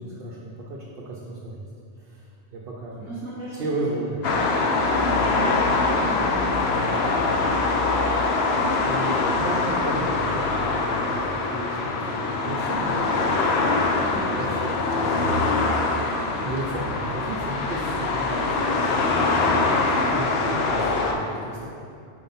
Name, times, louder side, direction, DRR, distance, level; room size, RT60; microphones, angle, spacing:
voice 1, 0.0-1.6 2.0-3.0 3.5-4.2 8.8-13.7 14.0-15.6 16.4-21.7, right 2 dB, 60° right, -3 dB, 0.9 m, -34 dB
voice 2, 2.9-3.7 4.0-7.8 14.0-14.4, equal, 15° right, -10 dB, 1.3 m, -39 dB
sound 1, 4.2-21.1, left 3 dB, 65° left, 0.8 m, -23 dB
5.0 x 4.4 x 5.5 m, 2.4 s
omnidirectional pair, 1.2 m